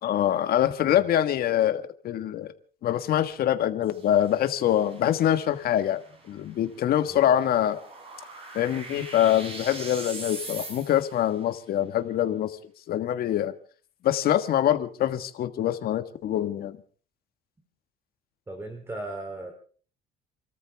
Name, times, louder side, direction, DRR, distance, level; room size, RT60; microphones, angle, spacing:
voice 1, 0.0-2.5 2.8-6.0 6.3-7.8 8.5-12.5 12.9-13.5 14.0-16.8, left 11 dB, 65° left, 9 dB, 1.6 m, -24 dB
sound 1, 3.8-11.3, right 2 dB, 35° right, 7.4 m, -42 dB
voice 2, 18.5-19.5, right 2 dB, 15° right, 4 dB, 3.2 m, -37 dB
29.0 x 13.5 x 3.5 m, 0.42 s
cardioid pair, 110°, 17 cm